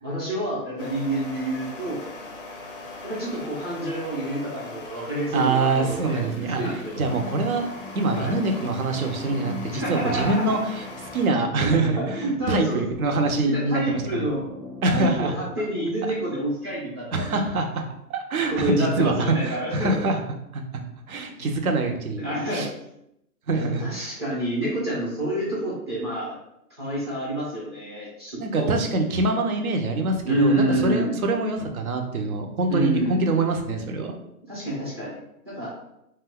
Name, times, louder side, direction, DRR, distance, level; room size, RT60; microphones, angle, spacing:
voice 1, 0.0-2.0 3.0-6.3 6.6-7.0 8.2-8.3 9.7-10.6 11.6-12.8 13.4-14.4 14.9-17.4 18.5-19.9 21.4-21.5 22.2-22.7 23.5-26.3 26.8-28.7 30.2-31.1 32.7-33.2 34.5-35.2 35.5-35.7, right 1 dB, 20° right, -6 dB, 0.5 m, -28 dB
sound 1, 0.8-11.3, left 3 dB, 40° left, 0.4 m, -41 dB
voice 2, 5.3-7.6 7.9-10.9 11.1-14.3 14.8-15.5 17.1-17.7 18.1-20.2 20.5-20.6 21.1-22.2 22.5-22.7 23.5-24.2 28.4-34.2, right 3 dB, 65° right, 4 dB, 0.7 m, -25 dB
sound 2, 6.3-15.2, left 2 dB, 85° right, 1.0 m, -41 dB
2.5 x 2.2 x 3.6 m, 0.80 s
hypercardioid pair, 150°, 46 cm